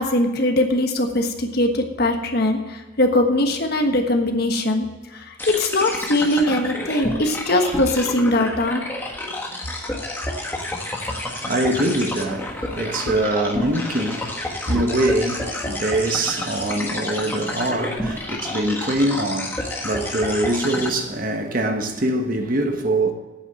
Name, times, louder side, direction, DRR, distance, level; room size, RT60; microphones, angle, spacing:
voice 1, 0.0-4.9 5.1-8.8, left 1 dB, 50° left, 1.3 m, -21 dB
sound 1, 5.4-20.9, left 1 dB, 10° left, 1.4 m, -29 dB
voice 2, 11.5-23.1, right 1 dB, 45° right, 1.2 m, -23 dB
8.8 x 8.3 x 7.5 m
head